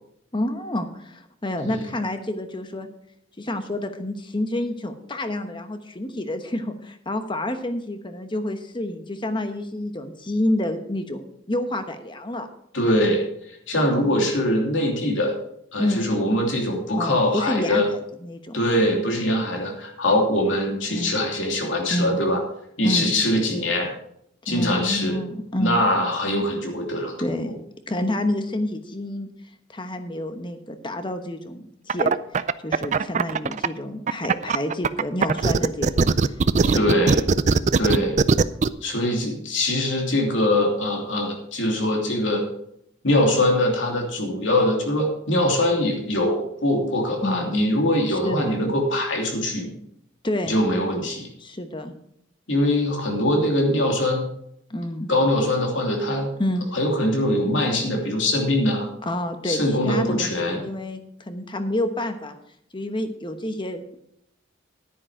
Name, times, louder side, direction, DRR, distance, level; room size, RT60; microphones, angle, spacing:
voice 1, 0.3-2.9 3.4-12.5 15.8-16.0 17.0-17.8 18.2-18.6 20.9-21.2 21.9-22.2 22.8-23.1 24.5-25.8 27.2-27.5 27.9-29.3 29.7-32.1 32.6-36.1 36.6-37.1 47.2-47.5 48.2-48.5 50.2-50.5 51.4-51.9 54.7-55.1 56.4-56.7 59.1-59.6 59.9-61.0 61.3-62.4 62.7-64.0, left 1 dB, 25° left, 8 dB, 1.1 m, -28 dB
voice 2, 12.7-15.4 15.7-17.9 18.5-22.4 22.8-23.9 24.4-25.2 25.5-27.1 27.4-27.5 36.7-37.2 37.8-38.2 38.8-42.4 43.0-49.7 50.4-51.3 52.5-54.2 55.1-56.3 56.7-58.9 59.4-60.6, left 1 dB, 70° left, 2 dB, 2.8 m, -22 dB
sound 1, 31.9-33.7 34.1-38.7, right 4 dB, 40° right, 0.4 m, -19 dB
10.5 x 9.6 x 4.9 m, 0.73 s
head